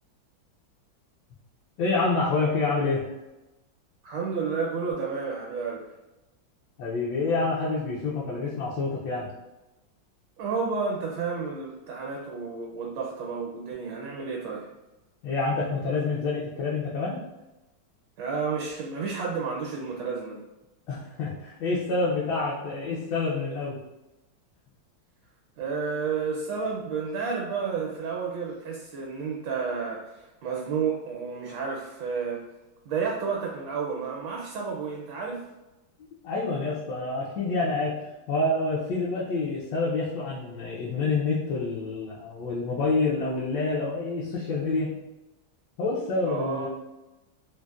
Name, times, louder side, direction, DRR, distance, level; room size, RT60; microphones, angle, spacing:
voice 1, 1.8-3.1 6.8-9.3 15.2-17.2 20.9-23.8 36.2-37.9 38.3-44.9 45.8-46.7, left 3 dB, 75° left, -5 dB, 1.2 m, -27 dB
voice 2, 4.0-5.9 10.4-14.7 18.2-20.4 25.6-32.4 32.8-35.4 46.3-46.7, right 5 dB, 75° right, -1 dB, 1.2 m, -31 dB
3.8 x 2.1 x 2.3 m, 1.0 s
omnidirectional pair, 2.1 m